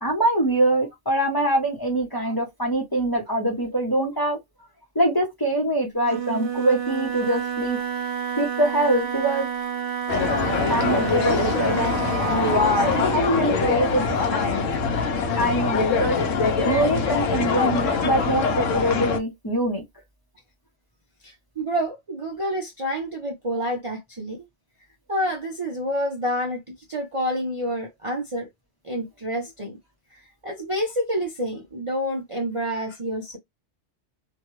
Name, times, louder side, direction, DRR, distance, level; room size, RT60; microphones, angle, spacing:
voice 1, 0.0-4.4 4.9-7.8 8.4-9.5 10.2-10.3 10.7-11.9 12.3-14.7 15.3-16.2 16.6-19.8, right 1 dB, 20° left, 0.8 m, -24 dB
Wind instrument woodwind instrument, 6.0-13.2, right 8 dB, 65° right, 0.9 m, -30 dB
sound 1, 10.1-19.2, left 5 dB, 85° left, 1.1 m, -23 dB
voice 2, 21.2-24.4 25.1-28.5 28.8-29.8 30.1-33.4, equal, 35° right, 0.5 m, -28 dB
2.9 x 2.2 x 3.0 m
omnidirectional pair, 1.3 m